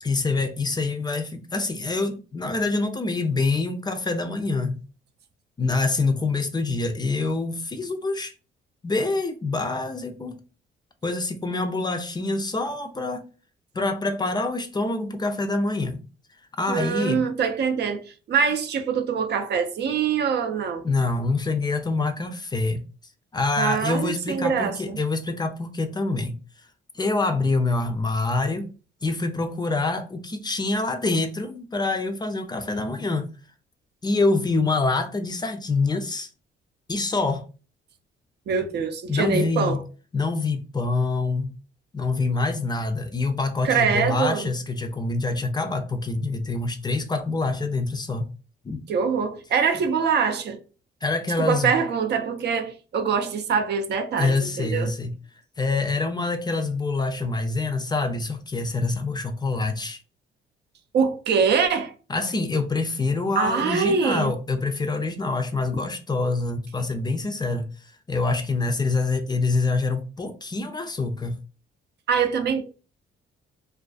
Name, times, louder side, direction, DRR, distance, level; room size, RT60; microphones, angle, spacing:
voice 1, 0.0-4.7 5.6-8.3 8.8-10.4 11.0-13.2 13.7-16.0 16.6-17.2 20.8-22.8 23.3-26.3 26.9-28.7 29.0-33.3 34.0-36.3 36.9-37.4 39.1-39.8 40.1-41.5 41.9-48.3 48.6-48.8 51.0-51.7 54.2-55.1 55.6-60.0 62.1-67.7 68.1-71.3, left 3 dB, 20° left, 0.4 m, -25 dB
voice 2, 16.7-20.9 23.6-25.0 38.5-39.8 43.6-44.5 48.9-50.6 51.4-54.9 60.9-61.9 63.4-64.3 72.1-72.6, right 6 dB, 60° right, 0.5 m, -24 dB
2.3 x 2.3 x 2.3 m
cardioid pair, 90°, 20 cm